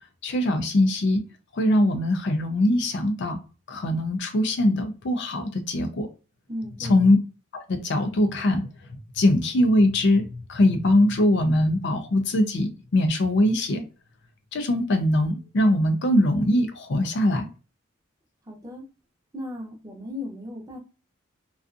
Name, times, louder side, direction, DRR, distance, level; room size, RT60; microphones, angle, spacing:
voice 1, 0.2-1.2 1.6-3.4 3.7-6.1 6.8-7.2 7.5-8.6 9.2-13.8 14.5-17.5, left 1 dB, 55° left, 7 dB, 0.4 m, -22 dB
voice 2, 6.5-7.2 18.5-18.9 19.3-20.8, left 1 dB, 15° right, 0 dB, 0.7 m, -36 dB
2.5 x 2.3 x 2.4 m, 0.33 s
head